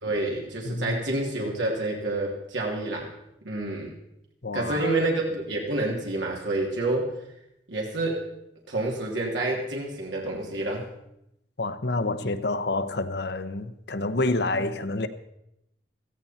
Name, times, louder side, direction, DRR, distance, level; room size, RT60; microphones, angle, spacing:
voice 1, 0.0-3.1 3.4-4.0 4.5-7.1 7.7-8.3 8.7-10.8, right 2 dB, 90° right, 2.9 m, -28 dB
voice 2, 0.6-1.0 4.4-5.0 11.6-15.1, left 2 dB, 65° left, 1.0 m, -28 dB
16.5 x 15.0 x 4.3 m
head